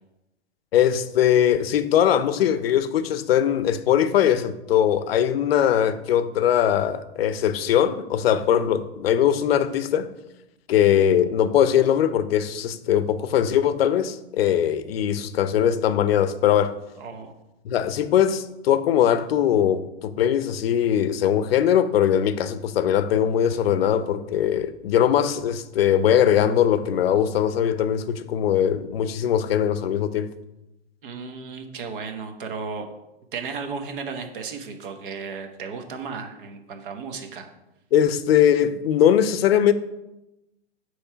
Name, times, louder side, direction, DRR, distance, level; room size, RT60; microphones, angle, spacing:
voice 1, 0.7-10.1 10.7-16.7 17.6-30.3 37.9-39.7, left 9 dB, 60° left, 0.6 m, -21 dB
voice 2, 17.0-17.3 31.0-32.9 33.3-37.5, right 5 dB, 50° right, 1.1 m, -34 dB
8.3 x 3.2 x 5.6 m
hypercardioid pair, 160°, 34 cm